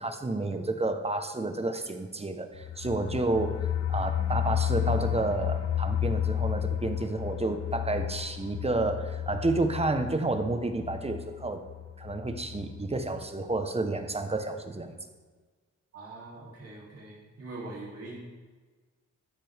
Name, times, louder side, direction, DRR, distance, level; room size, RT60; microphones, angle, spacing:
voice 1, 0.0-11.6 12.0-15.0, right 2 dB, 20° right, 7 dB, 1.2 m, -30 dB
sound 1, 2.6-13.3 13.6-13.7 14.0-14.1, left 10 dB, 60° left, 0.5 m, -32 dB
voice 2, 15.9-18.2, right 2 dB, 50° right, -6 dB, 3.2 m, -43 dB
14.5 x 10.0 x 3.6 m, 1.4 s
cardioid pair, 100°, 30 cm